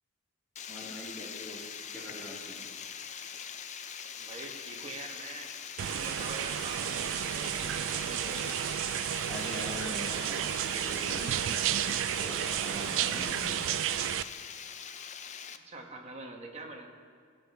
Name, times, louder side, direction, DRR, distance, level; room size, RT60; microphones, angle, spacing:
Water, 0.6-15.6, left 7 dB, 35° left, 0.4 m, -43 dB
voice 1, 0.7-1.6 1.9-2.6 9.3-11.4 12.2-13.6, left 1 dB, 10° left, -7 dB, 2.7 m, -42 dB
voice 2, 4.2-5.5 5.8-8.5 15.7-16.9, right 3 dB, 30° right, 1 dB, 1.2 m, -44 dB
sound 1, 5.8-14.2, right 11 dB, 65° right, 0.3 m, -32 dB
17.0 x 8.3 x 3.4 m, 2.2 s
head